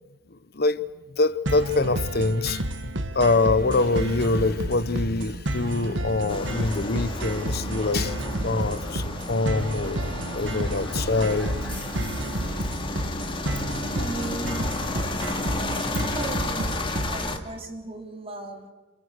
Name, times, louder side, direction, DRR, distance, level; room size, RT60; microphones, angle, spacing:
voice 1, 1.2-2.6 3.1-10.0 10.3-11.5, left 3 dB, 55° left, 14 dB, 1.0 m, -24 dB
sound 1, 1.5-17.4, right 1 dB, 80° right, 1.8 m, -31 dB
sound 2, 6.3-17.4, left 2 dB, 30° left, 2.4 m, -32 dB
sound 3, 8.1-12.1, left 2 dB, 5° left, 5.0 m, -49 dB
voice 2, 14.0-14.7 15.9-18.7, right 2 dB, 30° right, 3 dB, 3.7 m, -37 dB
28.5 x 28.0 x 6.7 m, 1.1 s
head